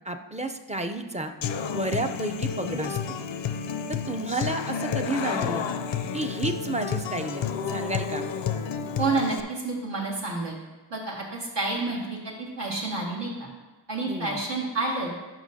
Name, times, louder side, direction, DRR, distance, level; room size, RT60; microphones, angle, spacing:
voice 1, 0.0-1.3 1.6-3.2 3.9-5.7 6.1-8.2 14.1-14.4, right 2 dB, 15° right, 5 dB, 0.5 m, -31 dB
Human voice / Acoustic guitar, 1.4-9.4, left 7 dB, 90° left, 0.5 m, -30 dB
voice 2, 9.0-10.6 10.9-13.5 13.9-15.1, right 3 dB, 70° right, -4 dB, 1.9 m, -29 dB
11.5 x 5.6 x 2.7 m, 1.2 s
wide cardioid pair, 65°, 43 cm